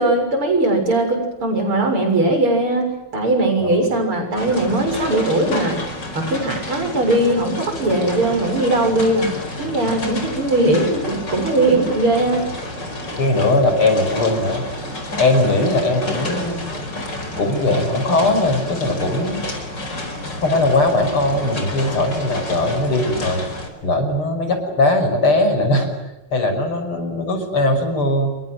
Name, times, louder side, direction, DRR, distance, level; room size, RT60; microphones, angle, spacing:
voice 1, 0.0-5.8 6.1-12.5, right 2 dB, 80° right, 5 dB, 7.7 m, -19 dB
voice 2, 3.6-3.9 13.2-14.6 15.2-16.6 17.4-19.4 20.4-23.4 23.8-25.9 26.3-28.3, left 2 dB, 80° left, 7 dB, 6.7 m, -19 dB
sound 1, 4.4-23.7, left 1 dB, 55° left, 5.5 m, -29 dB
29.0 x 23.5 x 7.9 m, 0.99 s
omnidirectional pair, 2.4 m